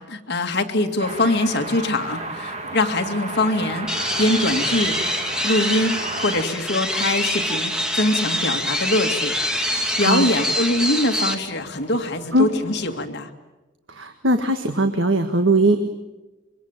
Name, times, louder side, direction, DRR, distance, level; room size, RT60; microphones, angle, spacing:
voice 1, 0.1-5.0 5.4-13.3, left 1 dB, 60° left, 4 dB, 2.3 m, -23 dB
sound 1, 1.0-6.4, right 2 dB, 35° right, 2.9 m, -33 dB
sound 2, 3.9-11.3, equal, 5° right, 2.5 m, -25 dB
sound 3, 4.3-13.0, left 2 dB, 40° left, 7.1 m, -45 dB
voice 2, 10.0-10.3 12.3-12.5 13.9-15.9, right 1 dB, 70° right, 6 dB, 1.8 m, -19 dB
25.0 x 23.5 x 9.1 m, 1.1 s
head